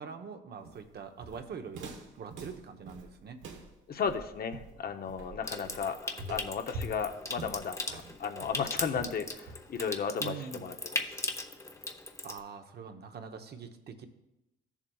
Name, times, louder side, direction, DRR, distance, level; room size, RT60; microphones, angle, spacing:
voice 1, 0.0-1.9 2.2-3.4 10.2-10.7 12.2-14.1, right 6 dB, 55° right, 5 dB, 0.9 m, -43 dB
Walk footsteps, 0.6-9.9, right 2 dB, 85° right, 1.1 m, -45 dB
voice 2, 3.9-11.2, left 6 dB, 50° left, 7 dB, 0.8 m, -35 dB
Water tap faucet / Sink (filling or washing) / Trickle dribble, 5.4-12.4, left 2 dB, 15° left, 0.7 m, -39 dB
14.0 x 7.2 x 2.3 m, 0.91 s
cardioid pair, 90°, 20 cm